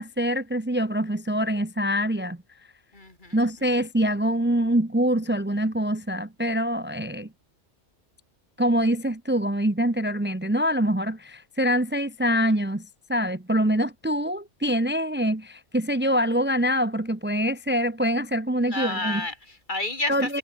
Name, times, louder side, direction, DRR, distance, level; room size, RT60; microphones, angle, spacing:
voice 1, 0.0-2.4 3.3-7.3 8.6-12.8 13.1-19.2 20.1-20.4, equal, 10° right, 1.1 m, -24 dB
voice 2, 2.9-3.4 18.6-20.4, left 2 dB, 40° left, 3.0 m, -31 dB
omnidirectional pair, 1.2 m